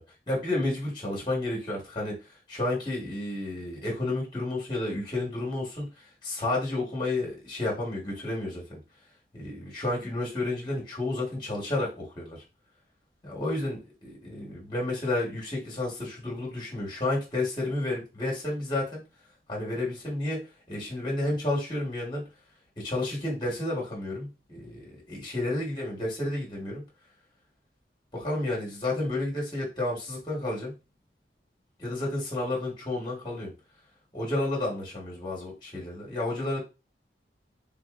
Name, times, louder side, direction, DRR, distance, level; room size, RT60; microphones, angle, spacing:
voice 1, 0.3-2.1 2.5-5.9 6.2-8.8 9.3-12.4 13.2-19.0 19.5-20.4 20.7-22.2 22.8-26.8 28.1-30.7 31.8-33.5 34.1-36.6, left 2 dB, 25° left, -3 dB, 1.3 m, -31 dB
3.6 x 2.9 x 2.4 m, 0.28 s
head